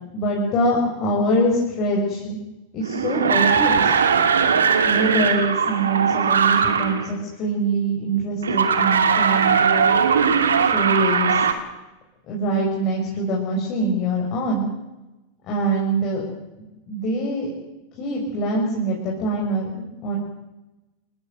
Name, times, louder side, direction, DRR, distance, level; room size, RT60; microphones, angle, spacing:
voice 1, 0.1-2.4 2.7-4.0 4.8-10.0 10.6-11.5 12.3-14.7 15.5-16.2 16.6-17.5 18.0-20.2, right 1 dB, 35° left, -2 dB, 6.9 m, -24 dB
sound 1, 2.8-7.1 8.4-11.5, right 6 dB, 70° right, 2.5 m, -19 dB
29.5 x 15.0 x 8.2 m, 1.0 s
figure-of-eight pair, 90°, 0 cm